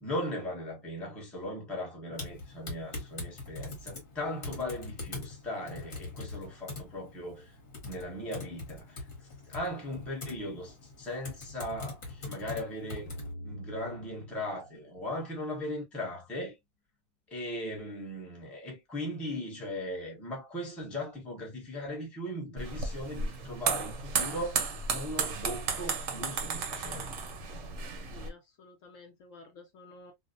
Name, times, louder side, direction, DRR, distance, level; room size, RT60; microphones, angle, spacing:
voice 1, 0.0-7.5 7.8-13.1 13.4-16.6 17.3-24.6 24.9-27.1, left 1 dB, ahead, 0.6 m, -38 dB
Typing, 2.1-13.3, left 3 dB, 40° left, 1.0 m, -43 dB
sound 1, 13.1-16.0, equal, 90° left, 1.2 m, -46 dB
sound 2, 22.6-28.3, right 5 dB, 65° right, 0.9 m, -34 dB
voice 2, 28.1-30.1, left 3 dB, 65° left, 0.9 m, -52 dB
2.5 x 2.0 x 2.5 m
omnidirectional pair, 1.6 m